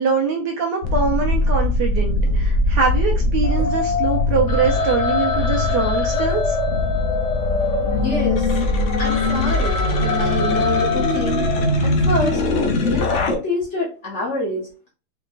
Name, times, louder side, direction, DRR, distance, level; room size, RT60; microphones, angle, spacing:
voice 1, 0.0-6.6, right 5 dB, 70° right, 1 dB, 1.1 m, -23 dB
sound 1, 0.8-13.4, left 2 dB, 75° left, 0.6 m, -20 dB
Telephone, 4.5-8.3 8.7-8.8 9.0-11.9, left 1 dB, 60° left, 1.3 m, -32 dB
voice 2, 8.0-8.5 9.0-11.5 11.8-12.4 12.7-14.9, left 1 dB, 45° left, -3 dB, 1.1 m, -26 dB
4.4 x 2.9 x 2.4 m, 0.33 s
omnidirectional pair, 2.2 m